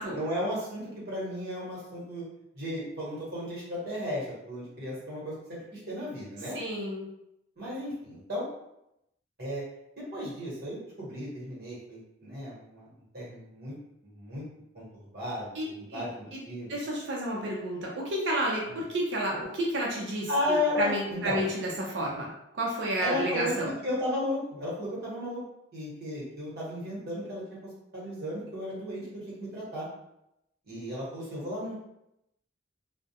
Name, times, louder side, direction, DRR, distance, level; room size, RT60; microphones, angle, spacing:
voice 1, 0.0-2.2 2.5-6.6 7.6-8.5 9.4-9.6 10.0-12.9 13.1-13.7 14.0-14.4 14.7-16.8 18.7-18.8 20.3-21.4 23.0-25.4 25.7-29.9 30.6-31.7, left 1 dB, 60° right, -7 dB, 1.1 m, -34 dB
voice 2, 6.5-7.1 15.6-16.1 16.3-16.4 16.7-23.7, right 1 dB, 80° right, -3 dB, 0.5 m, -31 dB
2.2 x 2.1 x 2.7 m, 0.83 s
head